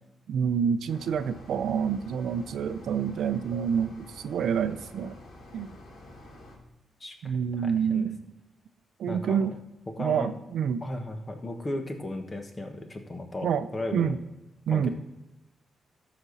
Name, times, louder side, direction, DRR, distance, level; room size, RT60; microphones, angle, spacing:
voice 1, 0.3-5.1 5.5-5.8 7.2-8.2 9.0-9.5 10.0-10.8 13.4-13.7 13.9-14.2 14.7-14.9, right 7 dB, 85° right, 12 dB, 0.5 m, -27 dB
sound 1, 0.9-6.6, left 1 dB, 75° left, 2.5 m, -48 dB
voice 2, 7.0-8.1 9.1-9.5 9.9-10.3 10.8-14.1 14.7-14.9, left 1 dB, 25° left, 4 dB, 1.4 m, -36 dB
12.5 x 5.1 x 4.0 m, 0.99 s
cardioid pair, 90°, 0 cm